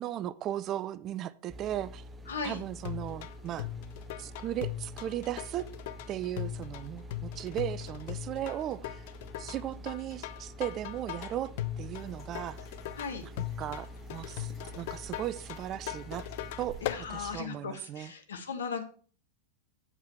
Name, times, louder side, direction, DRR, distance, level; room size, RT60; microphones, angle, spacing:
voice 1, 0.0-2.0 2.4-3.7 4.2-5.7 6.1-9.0 9.4-12.6 13.2-13.3 13.6-16.3 16.6-18.1, right 12 dB, 35° right, 0.4 m, -37 dB
sound 1, 1.5-17.4, left 1 dB, 15° right, 0.8 m, -47 dB
voice 2, 2.3-2.6 12.9-13.2 16.8-18.8, left 5 dB, 65° left, 1.3 m, -37 dB
sound 2, 2.8-17.0, left 13 dB, 50° left, 0.5 m, -39 dB
sound 3, 12.0-16.9, right 2 dB, 20° left, 4.2 m, -56 dB
8.1 x 7.4 x 4.4 m
figure-of-eight pair, 90°, 0 cm